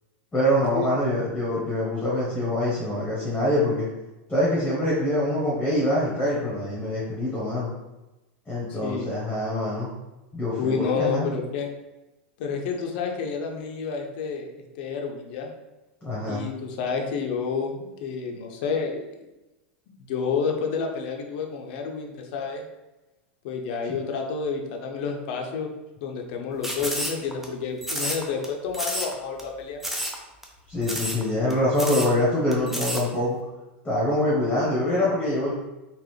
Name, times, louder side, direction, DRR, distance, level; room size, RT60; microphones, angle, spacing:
voice 1, 0.3-3.9 4.3-7.7 8.5-9.9 10.3-11.3 16.0-16.4 23.9-24.0 30.7-33.4 33.8-35.5, left 1 dB, 15° left, -6 dB, 1.2 m, -24 dB
voice 2, 8.8-9.1 10.6-11.7 12.4-14.5 14.8-15.5 16.3-19.0 20.0-22.6 23.4-25.7 26.0-29.8, left 5 dB, 60° left, 2 dB, 0.7 m, -29 dB
sound 1, 26.6-27.5 27.8-28.5 28.7-29.1 29.4-29.5 29.8-30.2 30.4-30.5 30.8-31.2 31.5-31.6 31.8-32.1 32.5-33.0, equal, 5° right, 0.6 m, -29 dB
3.9 x 2.5 x 3.2 m, 1.0 s
supercardioid pair, 125°, 6 cm